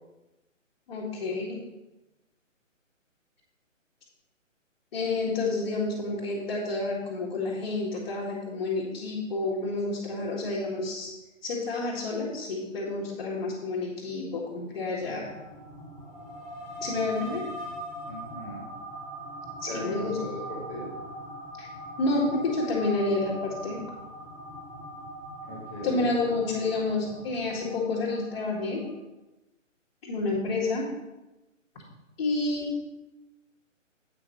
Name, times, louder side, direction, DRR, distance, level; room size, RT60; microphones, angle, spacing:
voice 1, 0.9-1.6 4.9-11.1 11.4-15.3 16.8-17.5 19.6-20.2 21.6-21.7 22.0-23.8 25.8-28.8 30.0-30.9 32.2-32.7, left 3 dB, 35° left, -6 dB, 1.8 m, -29 dB
sound 1, 15.0-28.9, right 1 dB, 10° right, 1.4 m, -41 dB
voice 2, 18.1-18.6 19.7-20.9 25.4-26.3, left 1 dB, 5° left, -5 dB, 0.6 m, -38 dB
8.5 x 5.0 x 5.9 m, 1.0 s
figure-of-eight pair, 145°, 39 cm